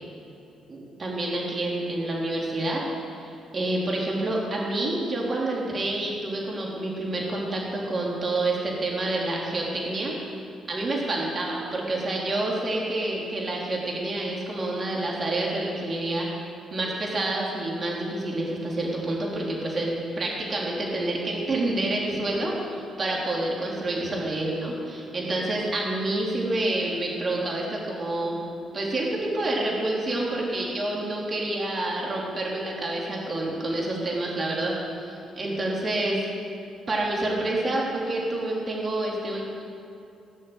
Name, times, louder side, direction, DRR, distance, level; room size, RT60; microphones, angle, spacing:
voice 1, 0.7-2.8 3.2-10.1 10.7-16.3 16.7-28.4 28.7-34.7 35.1-36.3 36.9-39.4, right 2 dB, 35° right, -3 dB, 3.7 m, -28 dB
16.5 x 6.5 x 9.1 m, 2.7 s
cardioid pair, 90°, 0 cm